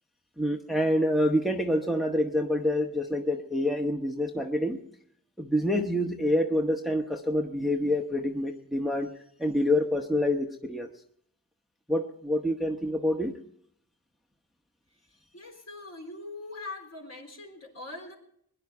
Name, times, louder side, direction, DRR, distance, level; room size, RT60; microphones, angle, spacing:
voice 1, 0.4-4.8 5.4-9.1 9.4-10.9 11.9-13.4, left 1 dB, ahead, 2 dB, 0.9 m, -27 dB
voice 2, 15.3-18.2, left 2 dB, 45° left, 2 dB, 3.6 m, -42 dB
21.5 x 10.5 x 5.5 m, 0.71 s
wide cardioid pair, 130°, 37 cm